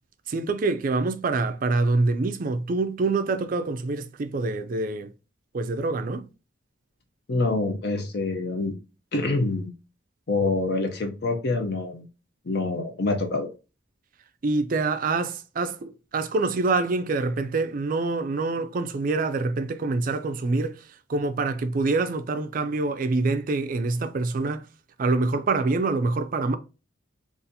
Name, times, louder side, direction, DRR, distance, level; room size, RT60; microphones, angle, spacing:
voice 1, 0.3-5.1 5.5-6.3 14.4-20.8 21.1-24.6 25.0-26.6, right 3 dB, 45° right, 0.4 m, -25 dB
voice 2, 7.3-8.7 9.1-9.7 10.3-12.0 12.4-13.5, left 3 dB, 55° left, 0.6 m, -26 dB
4.0 x 2.5 x 2.7 m
head